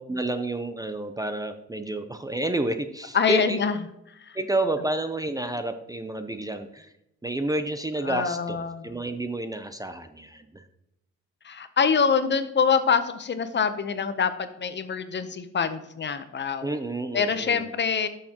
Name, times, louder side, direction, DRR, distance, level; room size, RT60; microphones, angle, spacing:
voice 1, 0.1-3.6 4.3-6.9 7.2-10.6 16.6-17.7, right 2 dB, 10° right, 8 dB, 0.6 m, -30 dB
voice 2, 3.1-3.8 8.1-8.9 11.4-16.7 17.1-18.1, left 6 dB, 35° left, 11 dB, 0.7 m, -25 dB
12.0 x 6.6 x 2.9 m, 0.85 s
cardioid pair, 90°, 30 cm